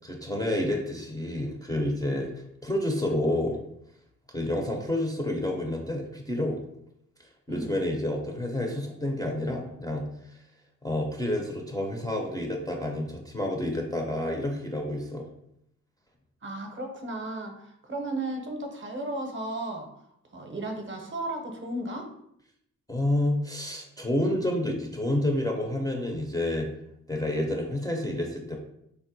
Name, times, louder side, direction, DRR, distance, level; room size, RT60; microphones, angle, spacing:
voice 1, 0.0-2.3 2.6-3.6 4.3-6.6 7.5-10.1 10.8-15.3 22.9-26.7 27.1-28.6, left 1 dB, 10° left, -1 dB, 0.4 m, -29 dB
voice 2, 16.4-19.9 20.3-22.1, right 1 dB, 35° right, 3 dB, 0.6 m, -34 dB
3.5 x 2.1 x 2.6 m, 0.75 s
cardioid pair, 70°, 33 cm